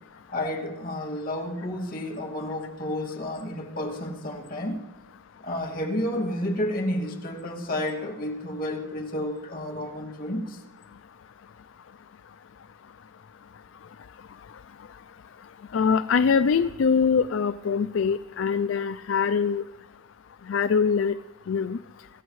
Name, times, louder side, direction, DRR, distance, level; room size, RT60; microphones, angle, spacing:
voice 1, 0.3-4.8 5.4-10.6, left 1 dB, 45° left, 2.2 m, -31 dB
voice 2, 15.7-19.6 20.5-21.1 21.5-21.8, left 6 dB, 70° left, 0.4 m, -23 dB
24.5 x 14.0 x 3.2 m
head